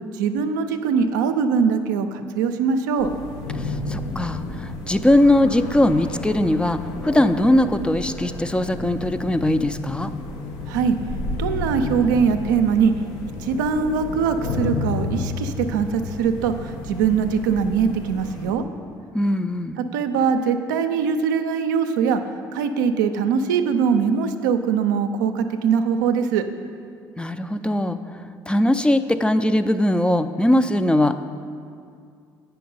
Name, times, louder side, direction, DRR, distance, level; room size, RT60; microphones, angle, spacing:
voice 1, 0.1-3.1 10.7-11.0 11.4-12.9 13.4-18.6 19.8-22.2 22.5-26.4, right 6 dB, 90° right, 7 dB, 0.4 m, -22 dB
sound 1, 3.0-18.5, left 3 dB, 75° left, 0.8 m, -32 dB
voice 2, 3.5-10.1 19.1-19.8 27.2-31.2, left 1 dB, 10° left, 10 dB, 0.4 m, -20 dB
8.4 x 5.7 x 5.4 m, 2.3 s
hypercardioid pair, 65°, 10 cm